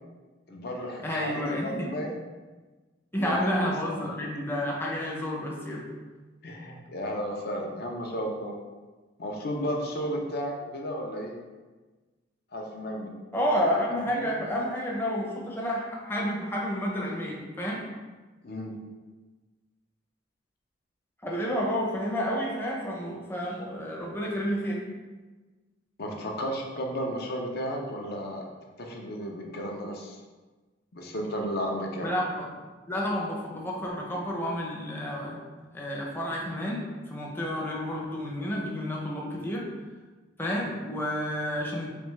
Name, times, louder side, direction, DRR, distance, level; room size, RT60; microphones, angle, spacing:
voice 1, 0.5-2.2 3.2-4.0 6.4-8.5 9.2-11.3 12.5-13.1 13.9-14.3 18.4-18.8 26.0-28.5 28.8-30.2 30.9-32.1, equal, 55° left, 1 dB, 0.6 m, -33 dB
voice 2, 1.0-1.9 3.1-5.9 13.3-17.8 21.2-24.8 32.0-32.5 32.9-35.4 35.7-39.7 40.4-41.9, equal, 10° left, -3 dB, 0.6 m, -30 dB
3.4 x 3.4 x 3.1 m, 1.3 s
head